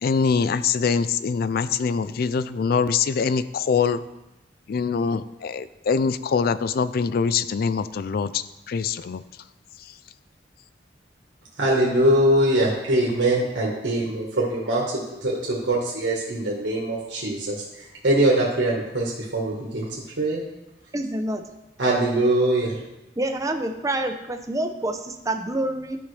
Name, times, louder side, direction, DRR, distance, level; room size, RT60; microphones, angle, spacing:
voice 1, 0.0-4.0 4.7-9.2 9.8-10.0, left 5 dB, 55° left, 14 dB, 0.4 m, -24 dB
voice 2, 11.6-14.8 15.2-19.9 20.2-20.4 21.8-22.8, right 1 dB, 85° right, -3 dB, 1.4 m, -22 dB
voice 3, 20.9-21.4 23.2-26.0, right 1 dB, 20° right, 6 dB, 0.6 m, -27 dB
12.0 x 5.3 x 3.3 m, 0.97 s
head